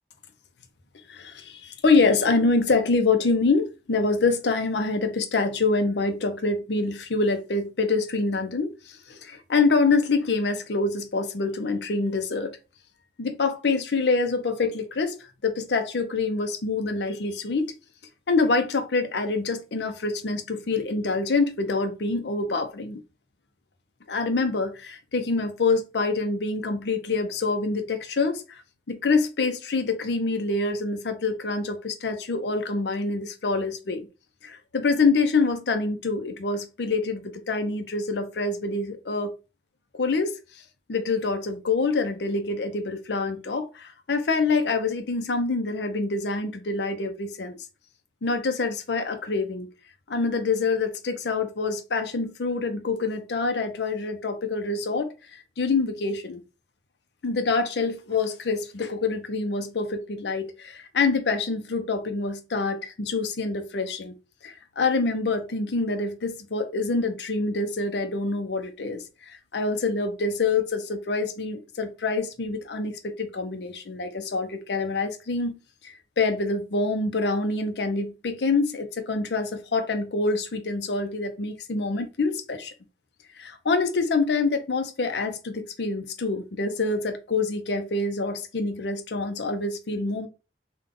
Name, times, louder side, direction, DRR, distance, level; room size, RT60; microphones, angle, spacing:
voice 1, 1.1-12.5 13.2-15.2 15.4-17.7 18.3-23.0 24.1-28.6 28.9-34.1 34.4-39.3 40.0-40.4 40.9-47.6 48.2-49.7 50.1-56.4 57.2-64.1 64.4-82.7 83.4-90.3, left 3 dB, 70° left, 0.6 m, -26 dB
3.6 x 2.3 x 3.7 m
head